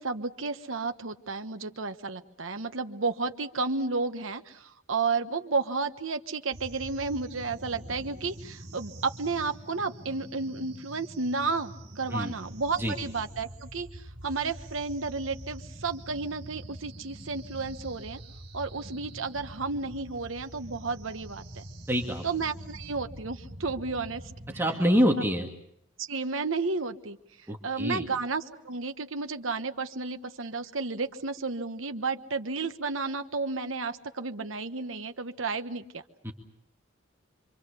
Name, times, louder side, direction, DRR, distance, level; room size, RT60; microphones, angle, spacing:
voice 1, 0.0-18.2 18.5-21.6 22.2-24.2 26.0-27.2 27.6-36.0, right 4 dB, 85° right, 8 dB, 1.3 m, -32 dB
sound 1, 6.5-25.1, right 1 dB, 50° right, 2.6 m, -45 dB
voice 2, 21.9-22.2 24.5-25.5 27.5-28.1 36.2-36.3, equal, 10° right, 1 dB, 2.4 m, -26 dB
26.0 x 25.5 x 6.9 m, 0.75 s
head